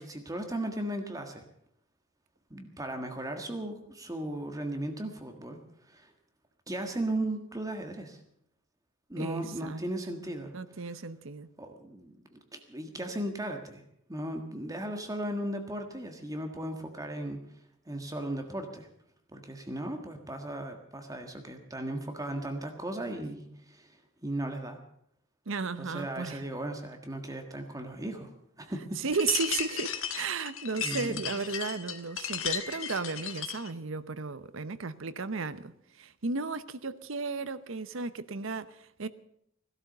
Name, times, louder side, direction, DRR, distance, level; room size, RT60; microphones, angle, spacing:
voice 1, 0.0-1.4 2.5-5.6 5.9-6.1 6.7-8.2 9.1-10.5 11.6-13.8 14.1-17.4 17.9-18.9 19.3-24.8 25.8-28.3 28.6-29.0 30.8-31.3, right 1 dB, 15° right, 1.6 m, -36 dB
voice 2, 9.2-9.8 10.5-11.5 25.5-26.5 29.0-39.1, right 4 dB, 65° right, 0.8 m, -34 dB
sound 1, 29.1-33.7, left 8 dB, 70° left, 1.5 m, -35 dB
17.0 x 12.5 x 6.7 m
head